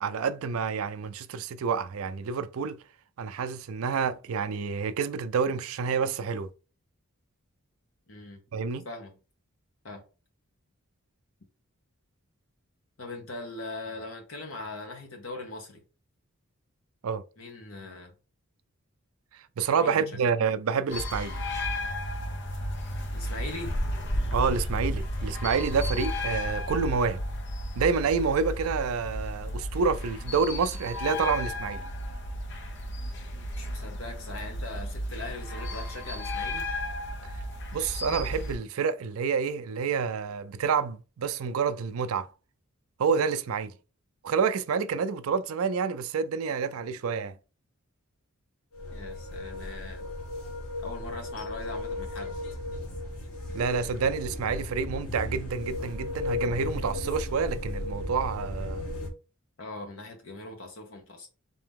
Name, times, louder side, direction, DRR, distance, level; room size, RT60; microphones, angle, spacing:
voice 1, 0.0-2.8 3.2-6.5 8.5-8.9 17.0-17.2 19.6-21.4 24.3-27.2 27.8-31.8 37.7-42.3 43.0-43.7 44.2-47.3 53.5-58.9, right 5 dB, 75° right, 0.4 m, -28 dB
voice 2, 8.1-8.4 8.8-9.1 9.8-10.0 13.0-15.8 17.4-18.1 19.8-20.3 23.1-23.8 33.5-36.7 48.9-50.1 50.8-52.4 59.6-61.3, left 2 dB, 65° left, 1.2 m, -40 dB
sound 1, 20.9-38.6, left 1 dB, 50° left, 0.7 m, -33 dB
sound 2, 48.7-59.1, left 2 dB, 85° left, 1.3 m, -35 dB
3.9 x 2.8 x 3.6 m
head